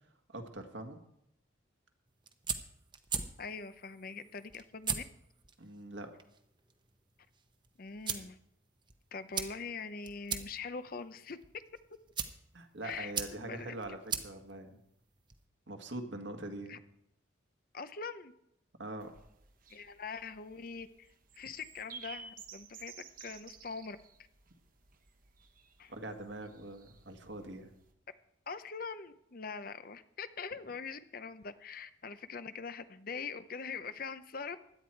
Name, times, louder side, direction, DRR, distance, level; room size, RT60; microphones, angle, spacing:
voice 1, 0.3-1.0 5.6-6.1 12.5-14.8 15.7-16.8 18.8-19.1 25.9-27.7, right 2 dB, 65° right, 6 dB, 1.7 m, -43 dB
sound 1, 2.1-15.5, right 6 dB, 25° right, 0.9 m, -42 dB
voice 2, 3.4-5.0 7.8-8.4 9.1-11.4 12.8-13.7 16.7-16.8 17.7-18.3 19.7-21.1 21.3-24.0 25.8-25.9 28.5-34.6, left 5 dB, 45° left, 12 dB, 0.7 m, -43 dB
sound 2, 19.0-27.9, right 6 dB, 45° right, 1.1 m, -54 dB
16.5 x 11.5 x 4.6 m, 0.79 s
head